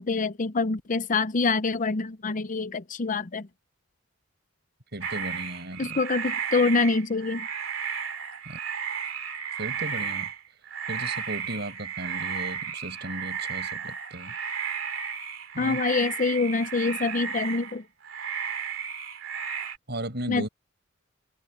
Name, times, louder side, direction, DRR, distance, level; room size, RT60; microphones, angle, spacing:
voice 1, 0.0-3.5 5.8-7.5 15.6-17.8 20.3-20.5, left 4 dB, 40° left, 0.7 m, -26 dB
voice 2, 4.9-6.0 8.5-8.6 9.6-10.3 10.9-14.4 15.5-15.8 19.9-20.5, right 1 dB, 55° right, 7.5 m, -36 dB
sound 1, 5.0-17.8 18.0-19.8, right 7 dB, 75° right, 2.9 m, -33 dB
head